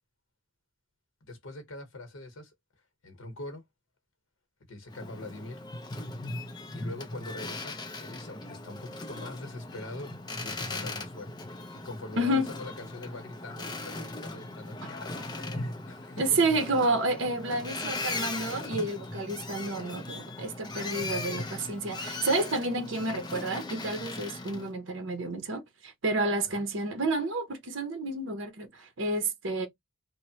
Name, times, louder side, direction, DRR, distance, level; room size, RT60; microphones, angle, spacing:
voice 1, 1.2-2.5 3.0-3.6 4.7-5.6 6.7-10.1 10.4-11.5 11.8-16.4, left 2 dB, 80° left, 0.9 m, -43 dB
Boat Water vehicle, 4.9-24.7, left 2 dB, 20° left, 0.4 m, -38 dB
voice 2, 12.2-12.5 14.8-14.9 16.2-29.7, right 2 dB, 70° right, 0.7 m, -30 dB
2.9 x 2.0 x 2.7 m
head